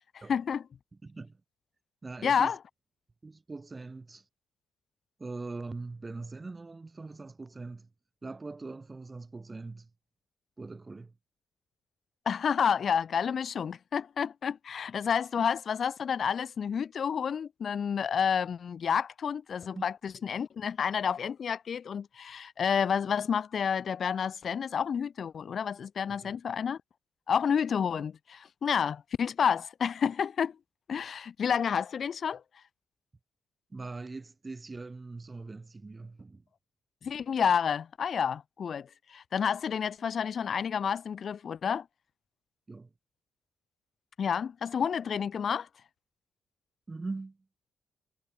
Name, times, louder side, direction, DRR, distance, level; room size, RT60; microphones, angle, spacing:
voice 1, 0.1-0.6 2.2-2.6 12.3-26.8 27.3-30.5 30.9-32.4 37.0-41.8 44.2-45.7, left 7 dB, 50° left, 0.4 m, -30 dB
voice 2, 1.0-1.4 2.0-2.5 3.2-4.3 5.2-7.9 8.2-9.9 10.6-11.1 15.4-15.5 19.7-19.9 26.1-26.4 33.7-36.4 42.7-42.9 46.9-47.4, right 3 dB, 25° right, 2.3 m, -41 dB
cardioid pair, 90°, 0 cm